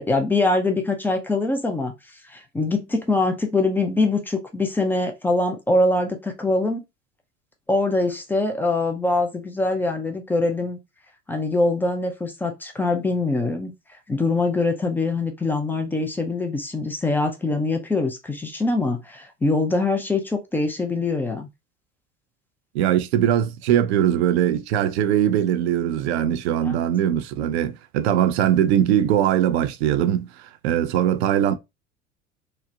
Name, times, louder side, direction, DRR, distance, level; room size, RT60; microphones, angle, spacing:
voice 1, 0.0-1.9 2.3-6.8 7.7-10.8 11.3-13.7 14.1-21.5 26.6-26.8, left 2 dB, 5° left, 0.3 m, -23 dB
voice 2, 22.7-31.6, right 10 dB, 60° right, 0.5 m, -21 dB
2.9 x 2.1 x 2.4 m
figure-of-eight pair, 70°, 37 cm